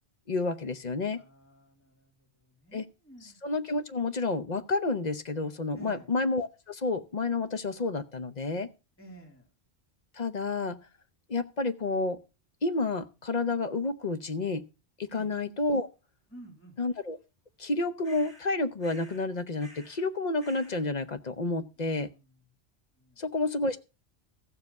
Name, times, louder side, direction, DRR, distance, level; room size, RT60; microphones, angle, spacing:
voice 1, 0.3-1.2 2.7-2.8 3.4-8.7 10.1-10.8 11.3-12.2 12.6-14.6 15.0-15.9 16.8-17.2 17.6-22.1 23.2-23.8, left 3 dB, 45° left, 10 dB, 0.8 m, -30 dB
voice 2, 1.1-3.4 5.7-6.1 9.0-9.5 15.1-15.3 16.3-16.7 21.8-22.3 23.0-23.2, right 2 dB, 10° left, 0 dB, 2.6 m, -52 dB
sound 1, 18.0-18.5 18.8-19.3 19.6-20.0 20.4-20.8, equal, 90° left, 5.9 m, -52 dB
14.5 x 7.3 x 5.2 m, 0.31 s
omnidirectional pair, 1.1 m